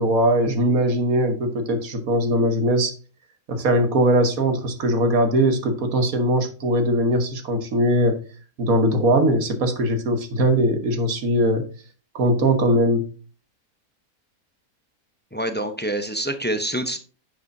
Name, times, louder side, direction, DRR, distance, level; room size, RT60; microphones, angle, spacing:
voice 1, 0.0-2.9 3.5-8.2 8.6-11.6 12.1-13.0, right 1 dB, 75° right, 7 dB, 1.7 m, -20 dB
voice 2, 15.3-17.0, right 1 dB, 10° left, 8 dB, 0.6 m, -26 dB
9.9 x 7.2 x 2.7 m, 0.36 s
omnidirectional pair, 1.5 m